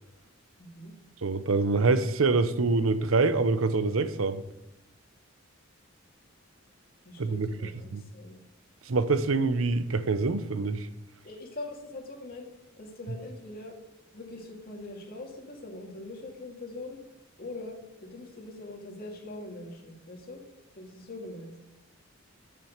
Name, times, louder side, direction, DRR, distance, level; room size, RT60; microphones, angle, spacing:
voice 1, 0.6-0.9 7.0-8.4 11.2-12.5 12.8-13.8 14.1-17.0 17.4-20.4 20.7-21.5, left 2 dB, 45° left, 2.2 m, -42 dB
voice 2, 1.2-4.4 7.2-7.5 7.9-8.0 8.9-10.9, right 3 dB, 80° right, 0.7 m, -25 dB
8.8 x 7.3 x 6.6 m
head